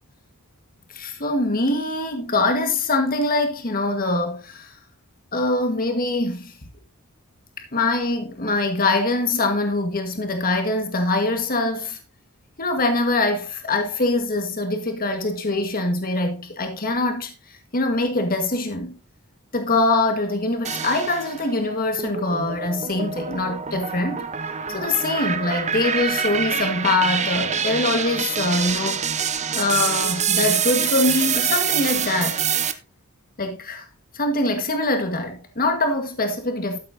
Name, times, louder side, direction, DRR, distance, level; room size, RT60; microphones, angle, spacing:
voice 1, 0.9-4.7 5.3-6.5 7.6-12.0 12.6-19.0 19.5-24.3 24.7-29.1 29.5-32.4 33.4-33.9 34.1-36.8, left 2 dB, 40° left, 1.7 m, -23 dB
sound 1, 20.6-21.5 22.0-32.7, right 7 dB, 30° right, 0.9 m, -25 dB
13.0 x 8.7 x 2.8 m
head